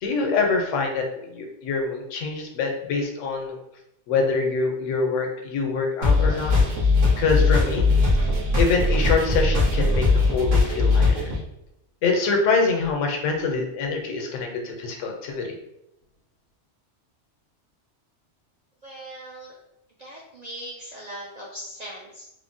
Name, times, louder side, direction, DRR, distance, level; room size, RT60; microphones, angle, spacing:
voice 1, 0.0-3.6 4.1-6.5 7.2-7.9 8.6-11.3 12.0-15.5, left 4 dB, 90° left, 2 dB, 1.0 m, -25 dB
sound 1, 6.0-11.4, left 3 dB, 90° right, 1.3 m, -20 dB
voice 2, 18.8-19.6 20.0-22.3, right 1 dB, 70° right, -4 dB, 0.4 m, -39 dB
3.2 x 2.0 x 2.5 m, 0.83 s
omnidirectional pair, 1.3 m